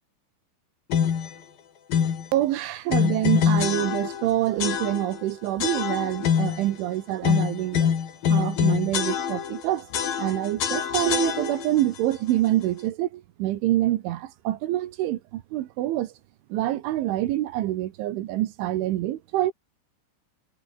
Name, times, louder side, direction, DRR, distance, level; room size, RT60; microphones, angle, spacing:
sound 1, 0.9-1.3 1.9-2.3 2.9-4.3 4.6-5.2 5.6-6.7 7.2-9.6 9.9-11.8, left 8 dB, 50° left, 4.2 m, -25 dB
voice 1, 2.3-7.9 8.3-9.9 10.2-16.1 16.5-19.5, right 14 dB, 75° right, 3.5 m, -26 dB
omnidirectional pair, 5.9 m